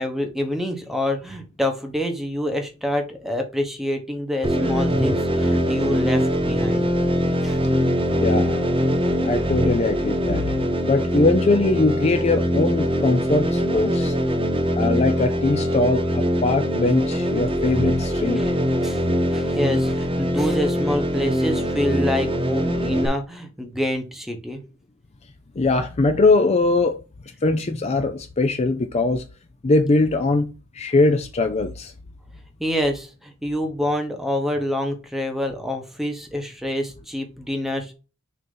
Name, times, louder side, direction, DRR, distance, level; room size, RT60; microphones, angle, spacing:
voice 1, 0.0-6.9 7.4-7.6 18.3-18.5 18.8-19.0 19.3-24.6 32.6-37.9, left 1 dB, ahead, 1.0 m, -27 dB
sound 1, 4.4-23.1, equal, 25° right, 0.8 m, -22 dB
voice 2, 8.2-8.7 9.2-14.1 14.8-18.4 25.6-27.0 27.4-29.2 29.6-31.9, left 3 dB, 30° left, 0.5 m, -21 dB
6.4 x 2.9 x 5.4 m
head